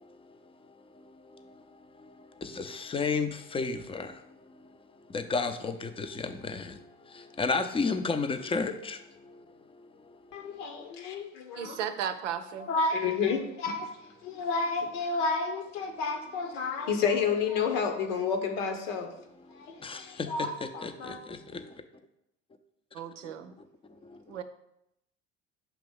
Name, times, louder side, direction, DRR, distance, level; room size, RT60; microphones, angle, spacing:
voice 1, 2.6-4.1 5.1-6.6 7.4-9.0 19.8-20.0 20.4-20.5 20.8-21.1, left 4 dB, 15° left, 0.5 m, -31 dB
voice 2, 10.3-11.8 12.6-13.9 14.2-19.1 20.0-21.2, left 4 dB, 80° left, 1.1 m, -30 dB
voice 3, 11.6-12.7 22.9-23.5 24.3-24.4, right 9 dB, 85° right, 0.6 m, -35 dB
5.9 x 3.0 x 5.4 m
hypercardioid pair, 75°, 36 cm